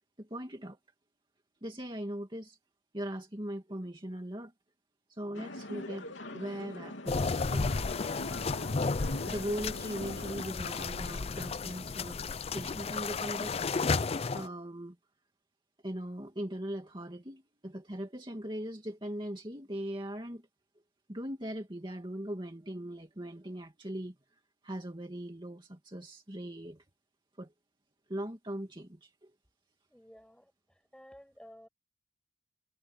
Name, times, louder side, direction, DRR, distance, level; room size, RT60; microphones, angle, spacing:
voice 1, 0.2-0.8 1.6-2.6 2.9-4.5 5.1-7.8 9.2-12.2 12.5-13.6 14.3-15.0 15.8-20.4 21.1-24.1 24.6-26.8 27.4-27.5 28.1-29.3, right 1 dB, 25° right, 2.3 m, -40 dB
sound 1, 5.3-10.4, left 1 dB, 80° left, 3.4 m, -43 dB
sound 2, 7.1-14.5, left 4 dB, 35° left, 0.4 m, -33 dB
voice 2, 29.9-31.7, equal, 5° left, 6.7 m, -54 dB
head